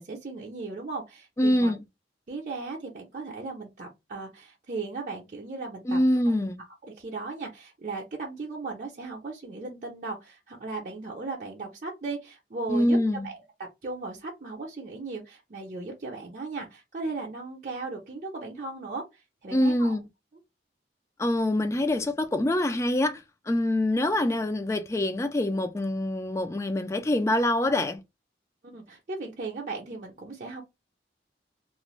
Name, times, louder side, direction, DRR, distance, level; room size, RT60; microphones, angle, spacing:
voice 1, 0.0-1.7 2.3-6.0 6.8-13.0 13.2-13.4 13.8-20.0 28.6-30.6, right 3 dB, 45° right, 0.6 m, -37 dB
voice 2, 1.4-1.8 5.9-6.6 12.7-13.3 19.5-20.1 21.2-28.0, left 1 dB, 15° left, 0.3 m, -25 dB
2.4 x 2.1 x 3.0 m
head